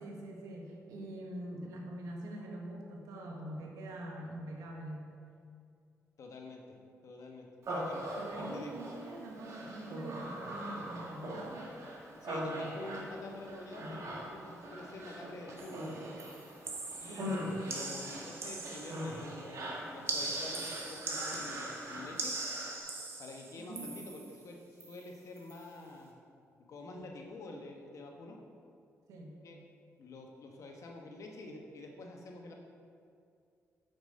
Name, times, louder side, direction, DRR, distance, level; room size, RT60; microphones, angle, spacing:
voice 1, 0.0-5.1 8.2-11.7 17.1-17.4 23.6-23.9 26.9-27.1 29.1-29.4, right 1 dB, 90° right, 0 dB, 1.1 m, -44 dB
voice 2, 6.2-6.8 7.0-8.1 8.4-8.7 12.2-15.8 17.0-22.4 23.2-26.1 26.7-28.4 29.4-29.6 30.0-32.5, left 2 dB, 70° left, 1 dB, 1.1 m, -47 dB
Human voice, 7.6-22.8, equal, 65° right, 1.5 m, -42 dB
Water Dripping (Large Echo), 15.6-15.9 16.2-19.3 20.1-24.4 24.8-25.1 25.4-25.6, right 3 dB, 50° right, 1.3 m, -41 dB
6.6 x 6.0 x 5.1 m, 2.4 s
cardioid pair, 65°, 6 cm